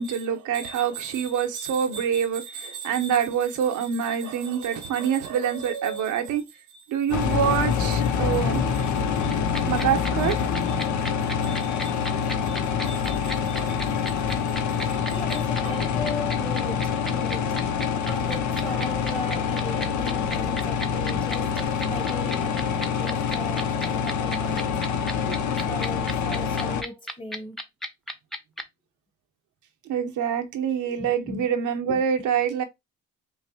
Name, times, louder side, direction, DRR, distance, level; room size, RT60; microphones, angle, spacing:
voice 1, 0.0-6.4 6.9-8.6 9.2-9.3 9.7-10.8 11.4-11.9 12.5-12.6 12.8-13.8 15.7-15.8 18.6-18.8 25.3-25.4 29.9-32.6, right 8 dB, 80° right, 0.9 m, -26 dB
sound 1, 7.1-26.8, left 7 dB, 70° left, 0.8 m, -26 dB
sound 2, 9.3-28.6, equal, ahead, 0.8 m, -32 dB
voice 2, 14.5-17.7 18.0-24.9 25.4-27.6 31.0-31.5 31.9-32.0, left 1 dB, 15° left, 1.1 m, -38 dB
5.7 x 2.1 x 2.8 m
cardioid pair, 90°, 30 cm